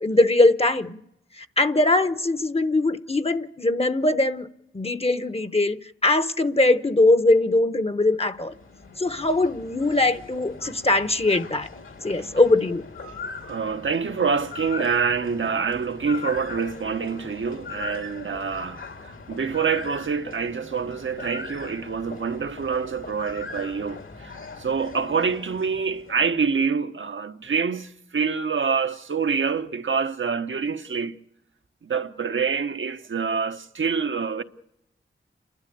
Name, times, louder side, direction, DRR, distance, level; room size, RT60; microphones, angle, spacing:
voice 1, 0.0-1.0 1.3-4.5 4.7-8.5 9.0-11.7 12.0-12.8, left 2 dB, 30° left, 0.9 m, -21 dB
sound 1, 8.1-26.5, left 4 dB, 75° left, 2.2 m, -40 dB
voice 2, 13.5-31.2 31.8-34.4, right 5 dB, 70° right, 1.1 m, -26 dB
29.5 x 12.0 x 8.6 m
wide cardioid pair, 105°, 21 cm